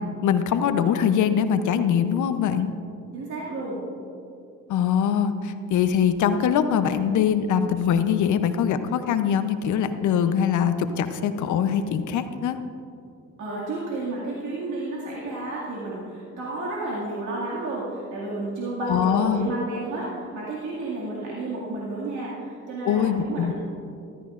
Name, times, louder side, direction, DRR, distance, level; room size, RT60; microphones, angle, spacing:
voice 1, 0.0-2.7 4.7-12.6 18.8-19.5 22.8-23.5, left 8 dB, 75° left, 10 dB, 0.7 m, -23 dB
voice 2, 3.1-3.8 13.4-23.5, right 2 dB, 75° right, -7 dB, 2.2 m, -31 dB
14.0 x 13.0 x 2.5 m, 2.5 s
cardioid pair, 90°, 30 cm